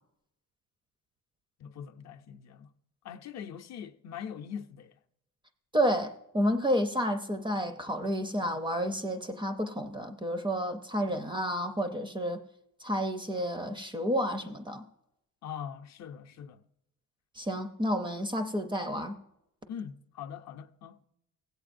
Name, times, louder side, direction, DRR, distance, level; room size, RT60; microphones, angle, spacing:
voice 1, 1.6-2.7 3.0-5.0 15.4-16.6 19.7-21.1, left 8 dB, 55° left, 0.5 m, -42 dB
voice 2, 5.7-12.4 12.8-14.8 17.4-19.1, equal, 15° right, 0.4 m, -30 dB
17.5 x 8.0 x 2.5 m
cardioid pair, 170°, 33 cm